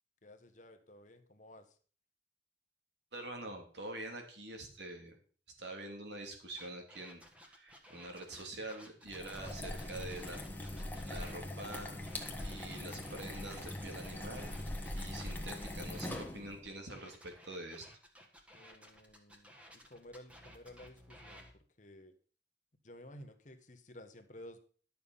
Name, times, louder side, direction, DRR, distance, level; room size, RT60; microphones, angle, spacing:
voice 1, 0.2-1.8 18.5-22.2 22.8-24.6, left 1 dB, 45° left, 8 dB, 1.2 m, -54 dB
voice 2, 3.1-5.2 5.6-10.4 11.0-12.0 12.4-14.6 14.9-17.9, right 2 dB, 75° right, 2 dB, 2.9 m, -46 dB
sound 1, 6.6-11.4 11.7-16.3 16.9-21.5, equal, 5° right, 1.6 m, -57 dB
sound 2, 9.1-16.7, left 1 dB, 10° left, 1.5 m, -42 dB
12.0 x 7.0 x 5.6 m, 0.42 s
head